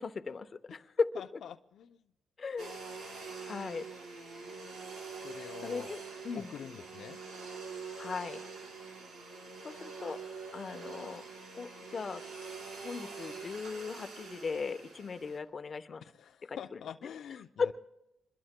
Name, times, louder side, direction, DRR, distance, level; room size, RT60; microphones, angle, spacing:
voice 1, 0.0-1.1 2.4-3.0 3.4-3.9 5.6-6.0 6.2-6.5 8.0-8.4 9.6-10.2 10.5-11.2 11.5-12.2 12.8-16.0 16.4-16.8 17.6-17.7, left 5 dB, 40° left, 0.9 m, -37 dB
voice 2, 1.2-2.0 5.2-5.9 6.3-7.2 16.0-17.7, left 9 dB, 65° left, 0.5 m, -46 dB
Domestic sounds home sounds, 2.6-15.4, right 4 dB, 70° right, 4.3 m, -45 dB
26.5 x 22.0 x 2.2 m
cardioid pair, 90°, 0 cm